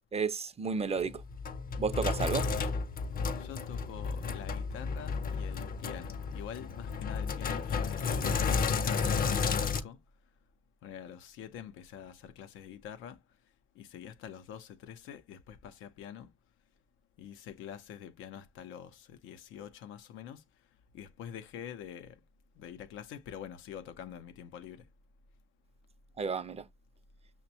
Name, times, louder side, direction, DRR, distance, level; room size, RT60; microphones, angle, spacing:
voice 1, 0.1-1.2 1.8-2.5 26.2-26.6, right 5 dB, 30° right, 0.5 m, -32 dB
Sink (filling or washing), 1.0-9.8, left 5 dB, 45° left, 0.6 m, -32 dB
voice 2, 3.4-10.0 10.8-13.2 13.8-16.3 17.2-20.4 20.9-22.2 22.6-24.9, left 9 dB, 90° left, 0.5 m, -46 dB
5.9 x 2.1 x 2.7 m
cardioid pair, 75°, 20 cm